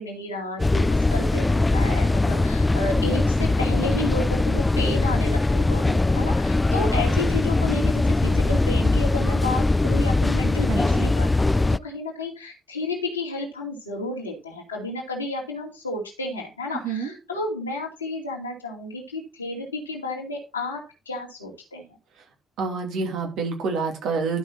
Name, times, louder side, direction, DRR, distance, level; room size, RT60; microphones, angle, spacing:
voice 1, 0.0-11.3 11.6-21.8, left 2 dB, 90° left, -1 dB, 2.4 m, -32 dB
sound 1, 0.6-11.8, left 2 dB, 20° left, 0.4 m, -21 dB
voice 2, 10.7-11.1 16.8-17.1 22.6-24.4, right 4 dB, 65° right, 2 dB, 2.9 m, -27 dB
12.0 x 5.5 x 4.3 m, 0.29 s
figure-of-eight pair, 45°, 0 cm